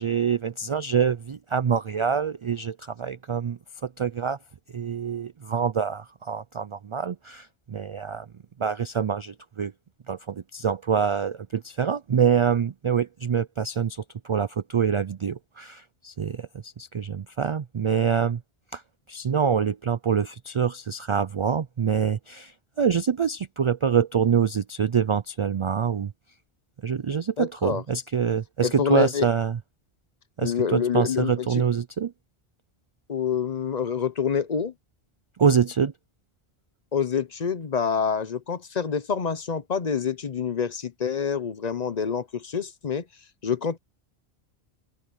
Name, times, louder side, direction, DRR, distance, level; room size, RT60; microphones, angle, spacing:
voice 1, 0.0-4.4 4.7-8.3 8.6-9.7 10.1-18.4 18.7-18.8 19.1-26.1 26.8-29.6 30.4-32.1 35.4-35.9, right 7 dB, 55° right, 0.3 m, -25 dB
voice 2, 27.4-27.8 28.6-29.3 30.4-31.6 33.1-34.7 36.9-43.0 43.4-43.8, left 6 dB, 45° left, 0.8 m, -27 dB
open air
omnidirectional pair, 1.0 m